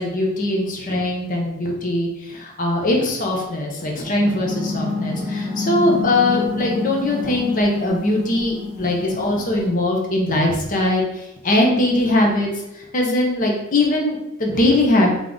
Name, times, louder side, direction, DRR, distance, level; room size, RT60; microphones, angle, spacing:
voice 1, 0.0-12.5 12.9-15.1, left 1 dB, 40° left, 0 dB, 0.8 m, -21 dB
sound 1, 4.0-9.7, left 3 dB, 20° left, 1.4 m, -28 dB
3.8 x 3.6 x 3.6 m, 0.89 s
head